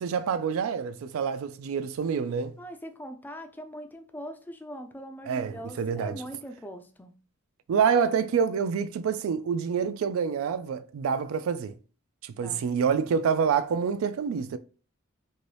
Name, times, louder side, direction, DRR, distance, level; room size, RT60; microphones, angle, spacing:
voice 1, 0.0-2.6 5.3-6.2 7.7-11.8 12.2-14.6, right 6 dB, 75° right, 0.3 m, -27 dB
voice 2, 2.6-7.1 12.4-12.6, equal, 10° left, 0.3 m, -41 dB
2.7 x 2.6 x 3.2 m
head